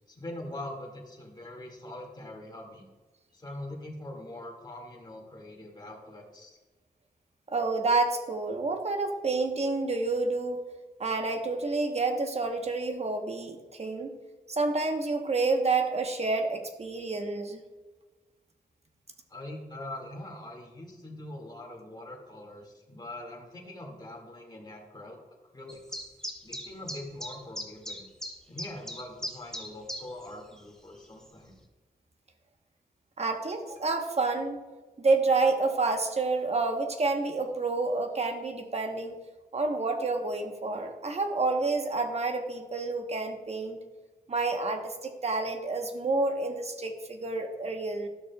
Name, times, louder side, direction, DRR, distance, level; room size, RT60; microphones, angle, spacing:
voice 1, 0.1-2.9 3.3-6.6 19.3-25.2 25.5-26.1 26.4-28.1 28.5-31.6, left 1 dB, 25° left, -1 dB, 2.1 m, -43 dB
voice 2, 7.5-10.6 11.0-14.1 14.5-17.6 33.2-34.6 35.0-39.1 39.5-43.8 44.3-44.9 45.2-48.1, right 3 dB, 40° right, 5 dB, 1.1 m, -29 dB
sound 1, 25.7-30.3 30.5-30.6 31.2-31.3, equal, 5° left, 1.2 m, -38 dB
12.5 x 6.3 x 2.3 m, 1.3 s
cardioid pair, 70°, 16 cm